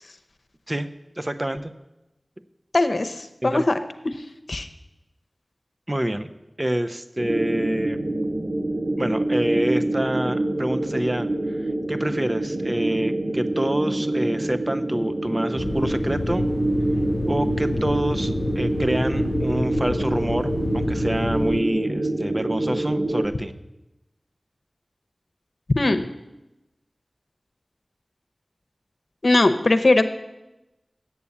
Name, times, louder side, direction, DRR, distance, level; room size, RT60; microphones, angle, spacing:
voice 1, 1.2-1.7 3.4-3.6 5.9-6.3 6.6-8.0 9.0-16.5 17.3-23.5, right 1 dB, 30° right, 10 dB, 0.7 m, -27 dB
voice 2, 2.7-3.8 4.5-4.7 25.8-26.0 29.2-30.1, left 2 dB, 70° left, 9 dB, 0.8 m, -19 dB
sound 1, 7.2-23.3, right 1 dB, 75° right, 1.3 m, -26 dB
room tone large empty bass hum rumble mosque, 15.6-21.6, left 3 dB, 90° left, 0.3 m, -29 dB
8.4 x 7.0 x 8.5 m, 0.97 s
wide cardioid pair, 40°, 0 cm